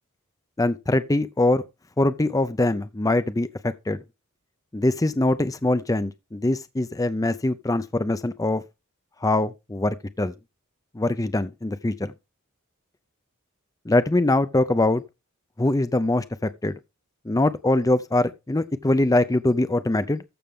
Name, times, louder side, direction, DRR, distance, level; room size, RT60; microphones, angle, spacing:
voice 1, 0.6-1.6 2.0-4.0 4.7-8.6 9.2-10.3 10.9-12.1 13.9-15.0 15.6-16.7 17.3-20.2, left 2 dB, 15° left, 0.5 m, -23 dB
14.0 x 6.6 x 3.6 m
head